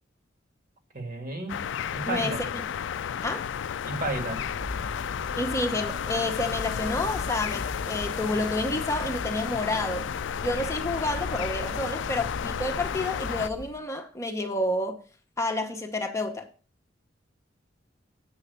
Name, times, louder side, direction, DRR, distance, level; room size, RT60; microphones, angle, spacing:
voice 1, 0.9-1.6 1.9-2.4 3.8-4.4, right 2 dB, 50° right, 1.9 m, -32 dB
sound 1, 1.5-13.5, left 8 dB, 65° left, 0.4 m, -32 dB
voice 2, 2.1-2.6 3.2-3.5 5.4-10.1 10.4-15.0 15.4-16.5, left 1 dB, 15° left, 0.9 m, -29 dB
sound 2, 3.9-13.8, left 1 dB, 65° right, 2.7 m, -40 dB
8.5 x 5.6 x 6.7 m
head